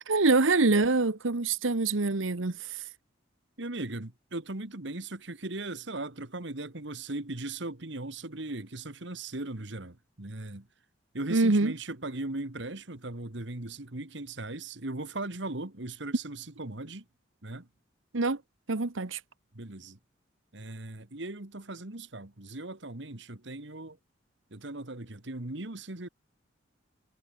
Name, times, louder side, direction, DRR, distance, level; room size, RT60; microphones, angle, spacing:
voice 1, 0.1-2.8 11.3-11.7 18.1-18.4 18.7-19.2, right 3 dB, 85° right, 1.2 m, -25 dB
voice 2, 3.6-10.7 11.1-17.0 17.4-17.7 19.5-20.0 20.5-24.0 24.5-26.1, right 2 dB, 65° right, 1.9 m, -38 dB
head